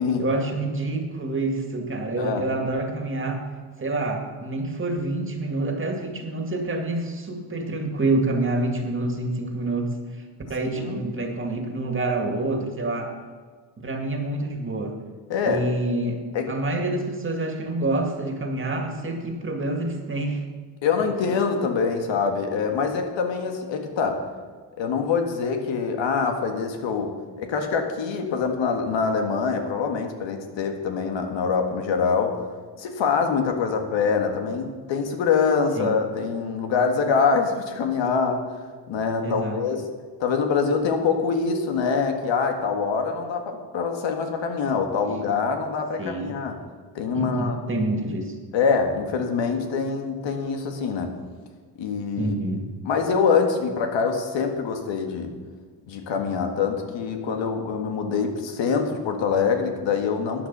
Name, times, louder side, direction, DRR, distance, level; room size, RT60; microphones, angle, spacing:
voice 1, 0.2-3.4 3.8-13.2 13.8-15.0 15.4-16.2 16.5-20.4 35.7-36.0 39.2-39.6 46.0-46.3 47.1-48.4 52.2-52.6, right 2 dB, 25° right, 3 dB, 2.1 m, -27 dB
voice 2, 20.8-24.2 24.8-32.3 32.8-38.4 38.9-39.9 40.2-46.5 47.0-47.6 48.5-51.1 51.8-52.4 52.8-55.3 55.9-60.5, left 5 dB, 85° left, 4 dB, 1.8 m, -24 dB
13.5 x 9.3 x 5.5 m, 1.5 s
cardioid pair, 115°, 44 cm